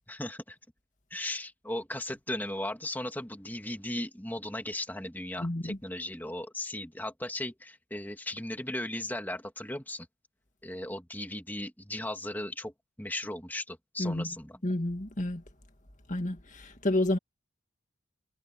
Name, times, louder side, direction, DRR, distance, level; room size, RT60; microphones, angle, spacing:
voice 1, 0.1-0.6 1.1-10.1 10.6-12.7 13.0-14.6, left 1 dB, 10° left, 2.9 m, -37 dB
voice 2, 5.4-5.8 14.0-14.3 14.6-15.4 16.1-17.2, left 1 dB, 35° left, 2.2 m, -30 dB
head